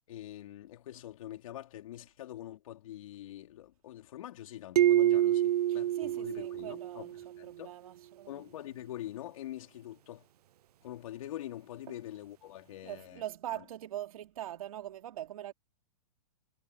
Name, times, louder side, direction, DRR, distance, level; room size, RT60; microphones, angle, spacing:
voice 1, 0.1-7.7 8.3-10.3 10.8-13.2 13.5-13.6, left 13 dB, 60° left, 4.4 m, -45 dB
sound 1, 4.8-7.3, right 12 dB, 80° right, 0.6 m, -27 dB
voice 2, 5.7-8.4 11.9-12.0 12.8-15.5, right 12 dB, 65° right, 3.2 m, -43 dB
hypercardioid pair, 160°, 20 cm